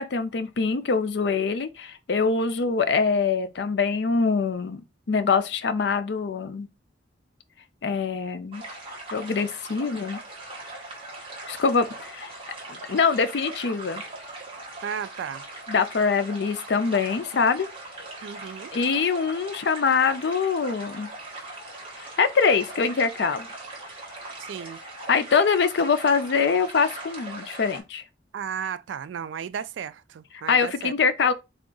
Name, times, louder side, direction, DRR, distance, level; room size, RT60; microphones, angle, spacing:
voice 1, 0.0-4.8 5.1-6.7 7.8-8.6 9.1-10.2 11.5-12.3 12.7-14.0 15.7-17.7 18.7-21.1 22.0-23.5 25.1-28.0 30.5-31.3, left 5 dB, 65° left, 0.5 m, -24 dB
sound 1, 8.5-27.8, right 2 dB, 30° right, 1.1 m, -40 dB
voice 2, 14.8-15.4 18.2-18.7 24.4-24.8 28.3-30.9, right 7 dB, 85° right, 0.3 m, -34 dB
3.6 x 2.5 x 3.7 m
head